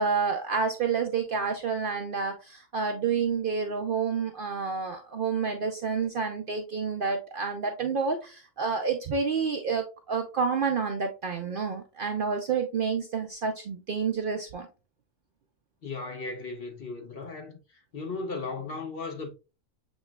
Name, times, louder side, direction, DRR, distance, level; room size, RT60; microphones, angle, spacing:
voice 1, 0.0-14.7, right 5 dB, 55° right, 0.6 m, -29 dB
voice 2, 15.8-17.6 17.9-19.3, left 3 dB, 50° left, 0.9 m, -36 dB
7.2 x 3.0 x 2.2 m
omnidirectional pair, 1.4 m